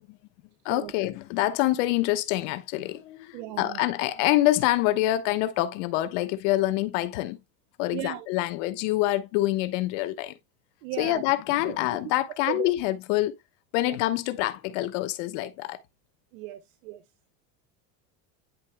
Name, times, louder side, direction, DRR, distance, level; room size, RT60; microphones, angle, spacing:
voice 1, 0.6-7.4 7.8-10.3 11.0-13.3 13.7-15.8, left 16 dB, 75° left, 1.1 m, -26 dB
voice 2, 3.3-3.8 7.9-8.3 10.8-11.2 11.6-11.8 12.5-12.7 13.8-14.0 16.3-17.0, right 16 dB, 85° right, 0.8 m, -36 dB
10.5 x 4.3 x 2.2 m
cardioid pair, 145°, 37 cm